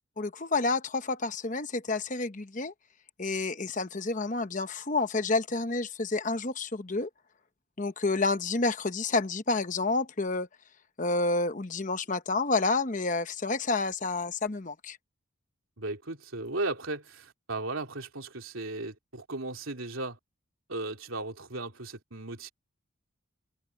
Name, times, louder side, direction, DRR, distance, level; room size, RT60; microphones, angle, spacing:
voice 1, 0.2-2.7 3.2-7.1 7.8-10.5 11.0-15.0, left 3 dB, 35° left, 1.0 m, -29 dB
voice 2, 15.8-20.2 20.7-22.5, right 2 dB, 70° right, 3.2 m, -36 dB
head